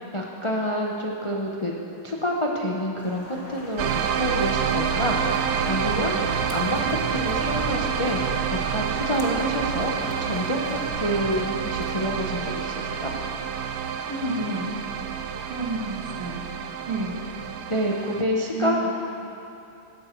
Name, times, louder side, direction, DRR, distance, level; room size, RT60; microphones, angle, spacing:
voice 1, 0.1-1.7 2.0-8.2 8.5-9.9 10.2-13.1 17.7-18.9, equal, 45° left, -1 dB, 0.3 m, -28 dB
Rain, 3.0-10.9, left 1 dB, 80° left, 3.0 m, -44 dB
sound 1, 3.8-18.2, right 7 dB, 65° right, 0.9 m, -28 dB
sound 2, 4.6-12.1, left 1 dB, 25° left, 0.8 m, -40 dB
voice 2, 14.1-14.7 15.5-16.4 16.9-17.2 18.5-18.9, right 2 dB, 80° right, -2 dB, 2.8 m, -29 dB
15.0 x 11.5 x 4.6 m, 2.9 s
omnidirectional pair, 2.3 m